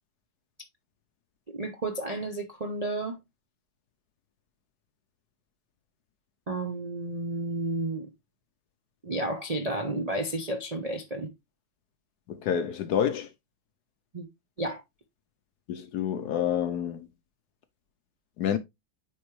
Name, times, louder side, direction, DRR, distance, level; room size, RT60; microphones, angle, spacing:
voice 1, 1.5-3.2 6.5-8.1 9.0-11.3 14.1-14.3 14.6-14.8, right 2 dB, 70° right, 0.3 m, -32 dB
voice 2, 12.3-13.3 15.7-17.1 18.4-18.6, left 9 dB, 70° left, 1.0 m, -28 dB
9.3 x 3.6 x 3.1 m
omnidirectional pair, 2.1 m